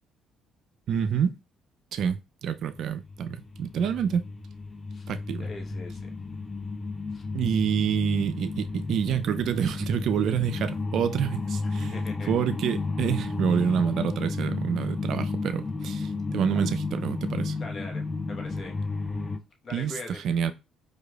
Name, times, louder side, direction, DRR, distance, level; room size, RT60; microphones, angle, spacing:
voice 1, 0.9-1.3 1.9-4.2 5.1-5.4 7.3-12.0 12.3-17.6 19.7-19.9 20.2-20.5, right 8 dB, 60° right, 0.3 m, -27 dB
sound 1, 2.7-19.4, left 3 dB, 25° left, 0.4 m, -33 dB
voice 2, 5.4-6.2 7.1-7.2 11.9-12.4 16.4-16.6 17.6-18.8 19.6-20.2, left 2 dB, 45° left, 0.9 m, -41 dB
4.6 x 2.4 x 2.2 m
hypercardioid pair, 50°, 0 cm